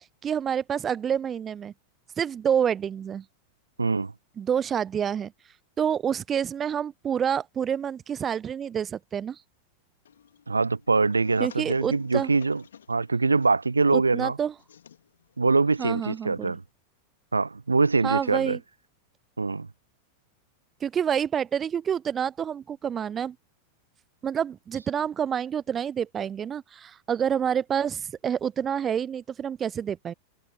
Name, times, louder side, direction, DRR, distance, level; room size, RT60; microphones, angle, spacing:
voice 1, 0.2-1.7 2.2-3.2 4.4-5.3 5.8-9.4 11.4-12.3 13.9-14.5 15.8-16.5 18.0-18.6 20.8-23.4 24.2-30.1, right 8 dB, 25° right, 0.5 m, -28 dB
voice 2, 3.8-4.1 10.5-12.6 12.9-14.4 15.4-16.6 17.3-18.6 19.4-19.7, right 3 dB, 80° right, 0.6 m, -23 dB
sound 1, 10.0-16.7, left 8 dB, 65° left, 2.7 m, -53 dB
figure-of-eight pair, 90°, 0 cm